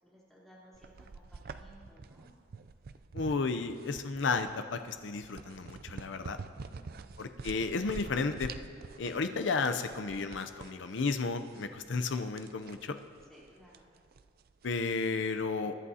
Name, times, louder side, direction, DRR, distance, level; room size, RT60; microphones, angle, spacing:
voice 1, 0.0-2.3 6.6-7.0 13.3-13.9, equal, ahead, -8 dB, 3.4 m, -58 dB
sound 1, 0.7-15.1, right 4 dB, 50° right, 0.4 m, -47 dB
voice 2, 3.1-6.4 7.2-8.5 9.0-13.0 14.6-15.8, left 4 dB, 65° left, 9 dB, 0.6 m, -33 dB
22.5 x 11.0 x 2.8 m, 2.2 s
head